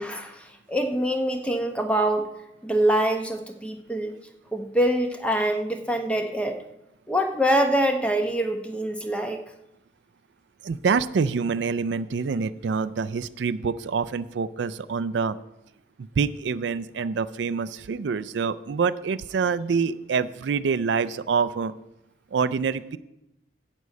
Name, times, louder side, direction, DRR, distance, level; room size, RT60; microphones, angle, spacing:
voice 1, 0.0-2.3 2.6-4.1 4.5-6.5 7.1-9.4, right 1 dB, 5° left, 4 dB, 0.9 m, -24 dB
voice 2, 10.6-15.4 16.0-21.7 22.3-23.0, right 5 dB, 70° right, 15 dB, 0.4 m, -26 dB
11.0 x 5.3 x 8.3 m, 0.88 s
head